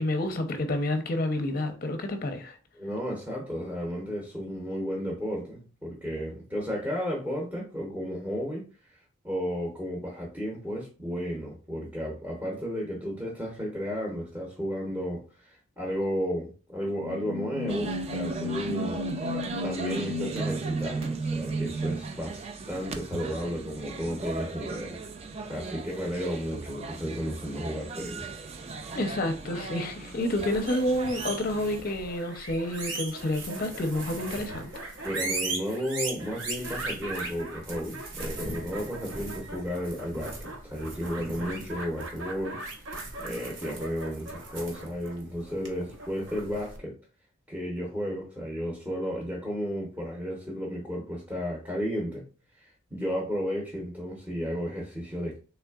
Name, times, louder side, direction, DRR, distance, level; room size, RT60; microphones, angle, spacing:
voice 1, 0.0-2.6 28.9-34.7, left 1 dB, 45° left, 0.5 m, -29 dB
voice 2, 2.7-9.0 9.2-19.0 19.2-25.0 25.4-28.4 35.0-46.9 47.5-52.2 52.6-55.4, equal, 10° right, 0.7 m, -33 dB
sound 1, 17.0-22.1, right 1 dB, 80° right, 1.4 m, -33 dB
sound 2, 17.7-31.8, right 4 dB, 30° right, 0.3 m, -38 dB
sound 3, 30.3-46.8, right 2 dB, 60° right, 0.8 m, -38 dB
3.6 x 3.2 x 2.3 m
head